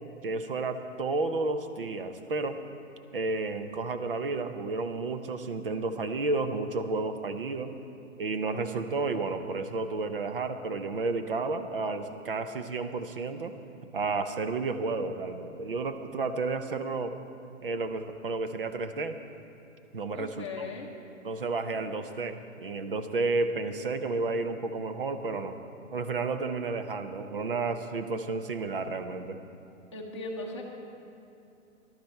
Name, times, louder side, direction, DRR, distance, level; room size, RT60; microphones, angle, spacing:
voice 1, 0.2-2.6 3.1-7.7 8.2-13.5 13.9-17.1 17.6-19.2 19.9-20.6 21.2-25.5 25.9-29.4, right 3 dB, 45° right, 9 dB, 0.6 m, -31 dB
voice 2, 20.1-20.9 29.9-30.6, left 3 dB, 20° left, -1 dB, 0.9 m, -38 dB
14.0 x 12.0 x 4.5 m, 2.7 s
hypercardioid pair, 180°, 40 cm